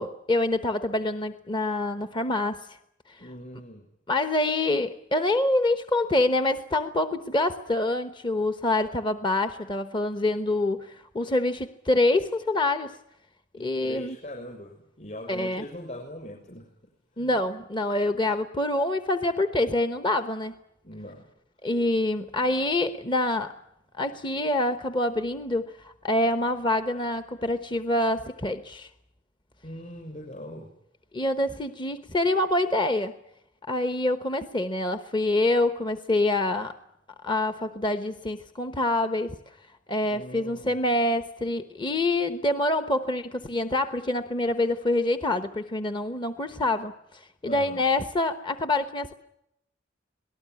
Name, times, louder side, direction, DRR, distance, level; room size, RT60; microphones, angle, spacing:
voice 1, 0.0-2.7 3.1-3.2 4.1-13.0 13.6-14.2 15.3-15.6 17.2-20.5 21.6-23.5 24.0-28.9 31.1-33.1 33.7-36.8 37.2-39.3 39.9-49.1, left 2 dB, 25° left, 10 dB, 1.0 m, -26 dB
voice 2, 3.2-3.8 13.5-16.7 17.1-17.3 20.8-21.3 29.6-30.7 40.0-40.7 47.4-47.8, left 1 dB, 40° left, 1 dB, 6.3 m, -41 dB
27.0 x 19.0 x 9.6 m, 0.82 s
head